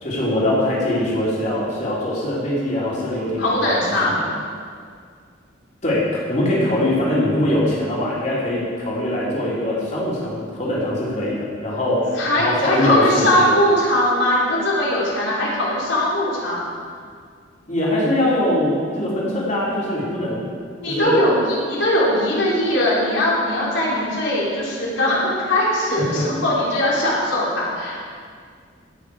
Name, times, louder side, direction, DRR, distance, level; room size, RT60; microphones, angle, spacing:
voice 1, 0.0-4.3 5.8-13.5 17.7-20.5 20.9-21.2 26.2-26.3, left 1 dB, 40° left, -6 dB, 3.4 m, -22 dB
voice 2, 3.4-4.2 12.2-16.7 20.8-28.0, left 1 dB, 75° left, -6 dB, 3.7 m, -20 dB
16.5 x 7.0 x 4.9 m, 2.1 s
head